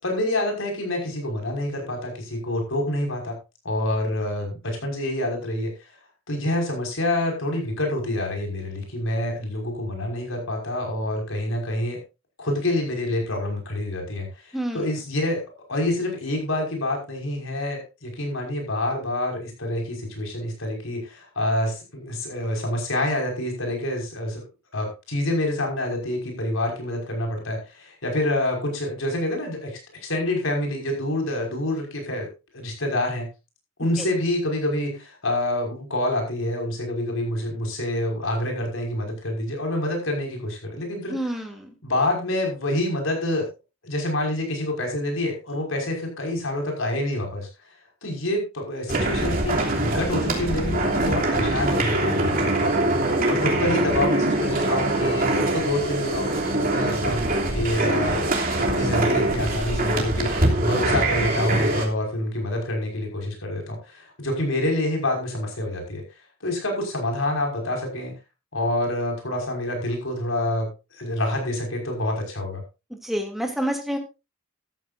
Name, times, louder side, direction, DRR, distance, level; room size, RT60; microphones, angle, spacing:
voice 1, 0.0-3.4 3.6-5.7 6.3-12.0 12.4-15.4 15.7-24.4 24.7-32.3 32.5-33.3 33.8-41.3 41.8-43.5 43.8-47.5 48.0-52.9 53.3-57.3 57.5-66.0 66.4-68.1 68.5-72.6, left 1 dB, 70° left, 2 dB, 5.8 m, -27 dB
voice 2, 14.5-14.8 34.0-34.1 41.1-41.7 73.0-74.0, equal, ahead, 1 dB, 2.8 m, -28 dB
sound 1, 48.9-61.9, right 2 dB, 45° right, 3.1 m, -23 dB
14.0 x 13.5 x 2.7 m, 0.28 s
head